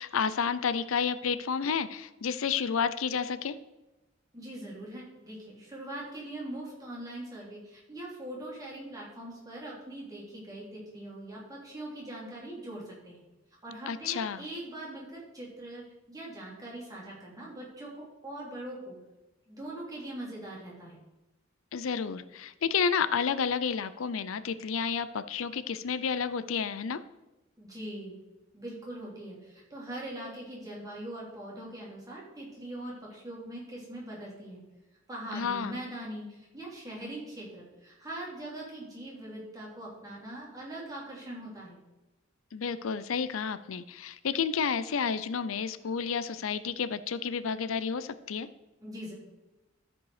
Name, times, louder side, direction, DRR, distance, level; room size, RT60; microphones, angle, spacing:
voice 1, 0.0-3.5 13.9-14.4 21.7-27.0 35.3-35.8 42.5-48.5, left 6 dB, 85° left, 14 dB, 0.5 m, -30 dB
voice 2, 4.3-13.2 13.6-19.0 19.5-21.0 27.6-28.2 28.5-34.6 35.1-41.8 48.8-49.1, right 1 dB, 20° right, -5 dB, 3.2 m, -42 dB
13.0 x 5.4 x 4.9 m, 1.0 s
head